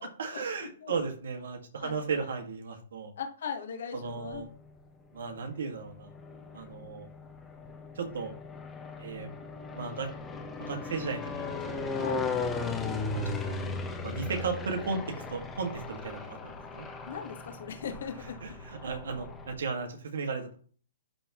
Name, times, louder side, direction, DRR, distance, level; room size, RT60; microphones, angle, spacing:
voice 1, 0.0-3.1 3.9-4.5 5.1-6.1 6.5-7.1 8.0-8.3 9.0-9.3 9.7-10.1 10.6-12.0 13.1-13.6 14.0-15.0 15.3-16.9 18.4-20.6, right 4 dB, 75° right, 4 dB, 1.9 m, -35 dB
voice 2, 3.2-4.4 6.7-7.0 11.9-12.3 14.1-14.3 17.0-18.5, left 7 dB, 65° left, 6 dB, 1.3 m, -39 dB
sound 1, 4.0-4.8 5.5-19.5, left 3 dB, 10° left, 1.0 m, -37 dB
11.5 x 3.8 x 3.1 m, 0.43 s
hypercardioid pair, 150°, 0 cm